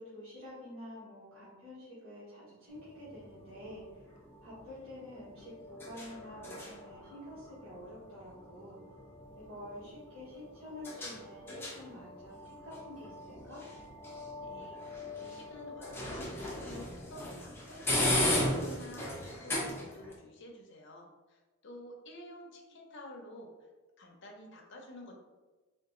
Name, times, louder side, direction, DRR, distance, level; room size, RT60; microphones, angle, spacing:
voice 1, 0.0-4.1 4.4-8.8 9.3-13.6, left 1 dB, 70° right, -11 dB, 1.4 m, -48 dB
sound 1, 2.7-20.2, left 1 dB, 10° left, 0.7 m, -38 dB
voice 2, 14.4-23.5 24.0-25.2, left 1 dB, 55° left, 1 dB, 0.7 m, -50 dB
3.8 x 2.5 x 3.7 m, 1.2 s
head